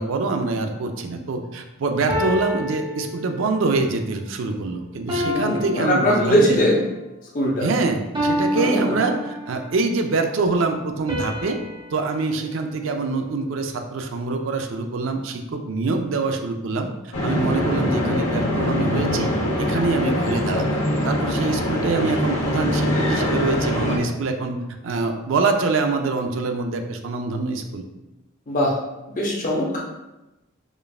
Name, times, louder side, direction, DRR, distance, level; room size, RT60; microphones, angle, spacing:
voice 1, 0.0-6.6 7.6-11.6 11.9-16.9 17.2-19.3 19.6-24.6 24.8-27.8, right 3 dB, 65° right, 5 dB, 0.4 m, -25 dB
sound 1, 0.6-0.9 2.1-3.7 5.1-6.7 8.1-9.8 11.1-13.5, left 1 dB, 20° right, 0.6 m, -29 dB
voice 2, 5.2-6.8 7.3-7.7 8.5-9.0 28.5-28.8 29.1-29.8, equal, 40° left, -4 dB, 0.6 m, -21 dB
sound 2, 17.1-24.0, left 1 dB, 85° left, 0.9 m, -23 dB
5.0 x 2.4 x 2.3 m, 0.99 s
head